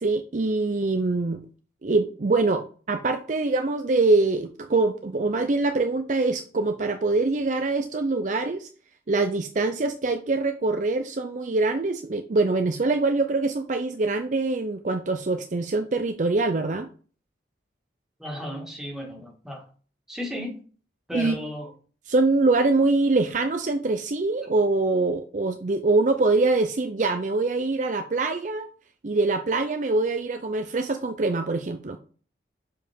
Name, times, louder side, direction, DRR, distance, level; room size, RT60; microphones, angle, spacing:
voice 1, 0.0-1.4 1.8-8.7 9.1-16.9 21.1-21.4 22.1-28.7 29.0-32.0, right 3 dB, 45° right, 7 dB, 0.5 m, -24 dB
voice 2, 18.2-19.6 20.1-20.6 21.1-21.7, equal, 5° right, -1 dB, 2.0 m, -34 dB
7.0 x 4.9 x 3.6 m, 0.40 s
head